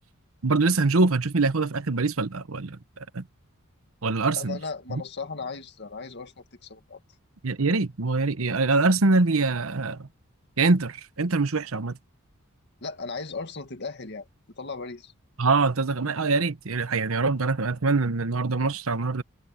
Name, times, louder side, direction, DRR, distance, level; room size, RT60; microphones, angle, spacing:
voice 1, 0.4-3.2 4.0-4.6 4.9-5.0 7.4-10.1 10.6-12.0 15.4-19.2, right 3 dB, 75° right, 1.0 m, -24 dB
voice 2, 4.3-7.0 12.8-14.3 14.6-15.1, left 4 dB, 55° left, 2.0 m, -36 dB
head